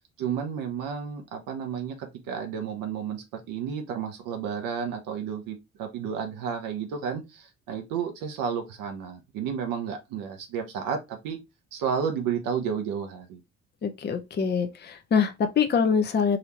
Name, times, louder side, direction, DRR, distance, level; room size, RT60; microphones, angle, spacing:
voice 1, 0.2-11.4 11.7-13.4, right 7 dB, 60° right, 0.8 m, -32 dB
voice 2, 13.8-16.4, left 6 dB, 30° left, 0.7 m, -24 dB
4.1 x 2.6 x 2.9 m
figure-of-eight pair, 45°, 37 cm